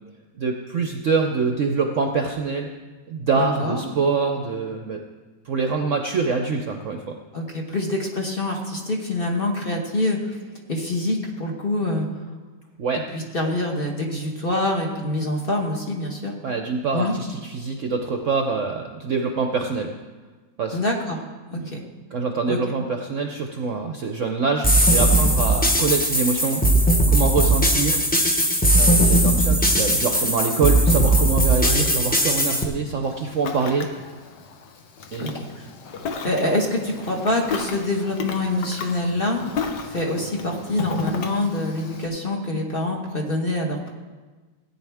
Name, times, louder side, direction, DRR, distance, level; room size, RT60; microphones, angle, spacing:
voice 1, 0.4-2.7 3.1-5.0 5.4-7.2 12.8-13.0 16.4-19.9 20.6-20.8 21.5-21.7 22.1-28.0 28.7-33.9 35.1-35.4, right 4 dB, 60° right, 4 dB, 0.8 m, -25 dB
voice 2, 3.4-3.8 7.3-10.4 10.7-12.1 13.1-16.3 16.9-17.1 20.7-21.2 21.5-21.8 22.5-22.6 31.6-31.9 35.2-35.6 36.2-39.4 39.8-43.9, left 1 dB, 35° left, 0 dB, 1.3 m, -25 dB
sound 1, 24.6-32.6, right 1 dB, 10° left, 0.5 m, -18 dB
Ocean, 33.0-42.1, left 5 dB, 70° left, 1.6 m, -34 dB
17.0 x 9.8 x 3.5 m, 1.3 s
omnidirectional pair, 2.0 m